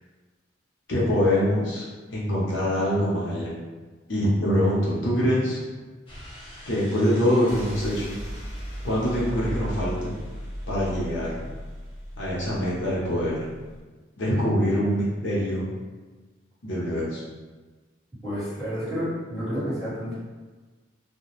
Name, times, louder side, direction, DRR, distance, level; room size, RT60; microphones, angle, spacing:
voice 1, 0.9-1.8 2.1-3.5 4.1-5.6 6.7-8.2 8.8-10.1 10.7-11.4 12.2-13.5 14.2-15.7 16.6-17.2, equal, 70° left, -6 dB, 0.7 m, -24 dB
sound 1, 6.1-13.8, equal, 25° left, 0.7 m, -37 dB
voice 2, 18.2-20.1, equal, ahead, -15 dB, 1.5 m, -30 dB
2.4 x 2.1 x 3.1 m, 1.3 s
head